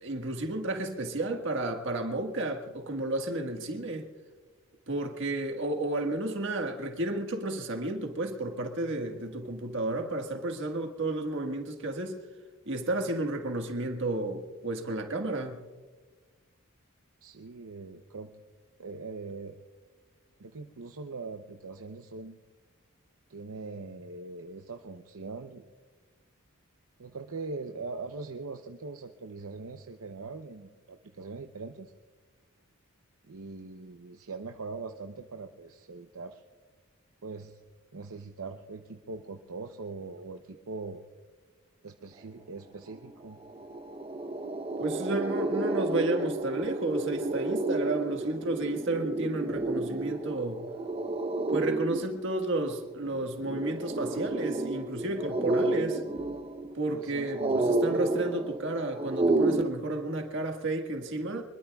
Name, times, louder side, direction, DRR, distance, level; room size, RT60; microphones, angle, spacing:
voice 1, 0.0-4.1 4.9-12.2 12.6-15.6 44.8-50.6 51.5-56.0 56.7-61.4, right 2 dB, 55° right, 1.6 m, -32 dB
voice 2, 17.2-18.3 18.8-19.6 20.4-22.4 23.3-25.7 27.0-31.9 33.2-36.4 37.2-37.6 37.9-41.0 41.8-43.4 56.9-57.6 57.9-58.1, right 3 dB, 75° right, 0.7 m, -41 dB
sound 1, 43.0-43.1 43.4-59.6, right 2 dB, 25° right, 0.8 m, -31 dB
24.5 x 21.5 x 2.3 m
head